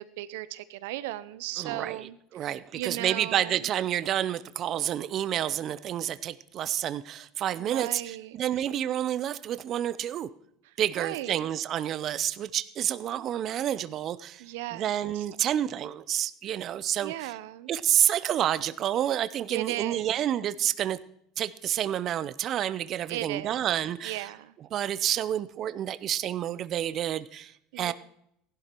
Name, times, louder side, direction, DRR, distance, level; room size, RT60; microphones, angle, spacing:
voice 1, 0.0-3.7 7.6-8.4 10.6-11.5 14.4-15.3 17.0-17.7 19.5-20.1 23.1-23.7 24.0-24.5 27.7-27.9, right 15 dB, 80° right, 16 dB, 0.8 m, -37 dB
voice 2, 1.6-10.3 10.8-14.4 14.7-17.3 17.7-21.0 21.4-24.3 24.7-27.9, right 11 dB, 45° right, 16 dB, 0.6 m, -29 dB
16.0 x 11.5 x 4.6 m, 0.73 s
supercardioid pair, 115°, 0 cm